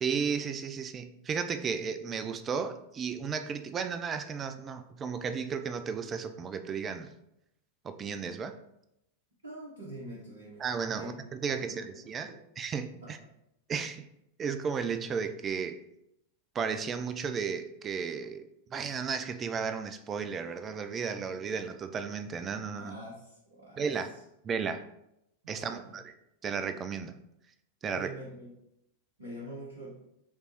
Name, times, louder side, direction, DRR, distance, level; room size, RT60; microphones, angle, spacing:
voice 1, 0.0-7.1 7.8-8.5 10.6-13.2 13.7-14.1 14.4-15.8 16.5-23.0 23.8-24.1 24.4-24.8 25.5-26.1 26.4-27.2 27.8-28.1, right 6 dB, 25° right, 9 dB, 0.4 m, -34 dB
voice 2, 9.4-10.7 10.9-11.1 11.5-12.4 13.0-13.2 22.7-24.2 25.4-26.0 27.9-28.5 29.2-30.0, right 1 dB, 75° right, -7 dB, 1.0 m, -45 dB
4.9 x 3.1 x 2.9 m, 0.82 s
figure-of-eight pair, 90°, 0 cm